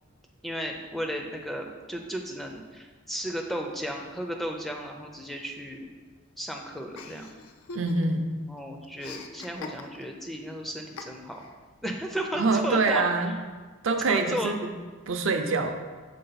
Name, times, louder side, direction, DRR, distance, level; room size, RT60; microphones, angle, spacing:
voice 1, 0.4-5.8 6.4-7.3 8.5-11.5 11.8-13.0 14.1-14.5, equal, ahead, 2 dB, 0.4 m, -34 dB
Chuckle chortle, 6.9-8.3 8.6-10.2 11.0-11.5, left 4 dB, 80° left, 0.5 m, -42 dB
voice 2, 7.7-8.3 12.3-13.3 13.8-14.7 15.1-15.7, right 3 dB, 65° right, 6 dB, 0.5 m, -25 dB
6.7 x 3.9 x 4.0 m, 1.4 s
head